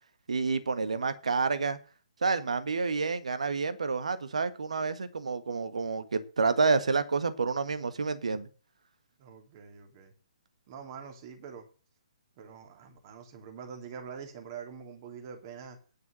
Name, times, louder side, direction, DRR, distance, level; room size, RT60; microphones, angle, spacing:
voice 1, 0.3-1.8 2.2-8.5, right 4 dB, 70° right, 1.6 m, -29 dB
voice 2, 9.2-10.1 10.7-11.7 12.4-15.8, right 6 dB, 35° right, 3.1 m, -45 dB
10.0 x 6.9 x 7.6 m
figure-of-eight pair, 130°, 4 cm